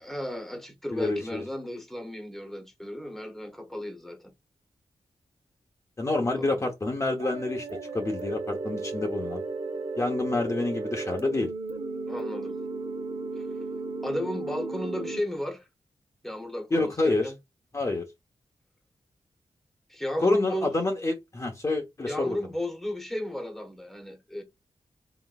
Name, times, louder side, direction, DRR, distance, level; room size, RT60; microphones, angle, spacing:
voice 1, 0.0-4.3 6.1-6.7 12.1-12.6 13.4-13.5 14.0-15.6 16.2-17.3 19.9-20.7 22.1-24.4, left 1 dB, ahead, 1.1 m, -34 dB
voice 2, 0.9-1.4 6.0-7.7 7.9-9.4 10.0-11.5 16.7-17.3 17.7-18.1 20.2-22.4, left 2 dB, 30° left, 0.9 m, -27 dB
sound 1, 7.2-15.2, right 3 dB, 60° right, 0.8 m, -34 dB
4.0 x 4.0 x 2.3 m
wide cardioid pair, 140°, 11 cm